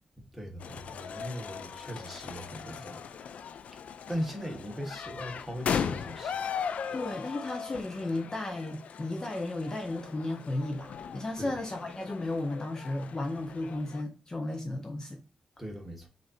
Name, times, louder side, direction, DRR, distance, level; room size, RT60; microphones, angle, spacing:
voice 1, 0.3-3.3 4.1-6.4 11.4-11.5 15.6-16.1, equal, 5° right, 1.2 m, -39 dB
sound 1, 0.6-14.0, left 7 dB, 90° left, 0.3 m, -38 dB
voice 2, 6.9-15.2, left 2 dB, 30° left, 0.7 m, -34 dB
6.2 x 2.7 x 2.5 m
wide cardioid pair, 135°, 2 cm